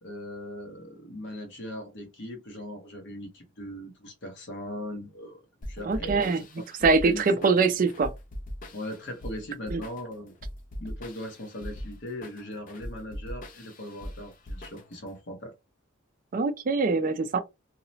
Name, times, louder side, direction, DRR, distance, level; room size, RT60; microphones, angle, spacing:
voice 1, 0.0-6.6 7.0-7.5 8.7-10.4 10.8-15.5, left 1 dB, 55° left, 0.8 m, -39 dB
sound 1, 5.6-15.2, equal, 40° left, 0.4 m, -41 dB
voice 2, 5.8-6.4 6.8-8.1 9.7-9.8 16.3-17.4, right 4 dB, 40° right, 0.4 m, -23 dB
2.8 x 2.0 x 2.7 m
head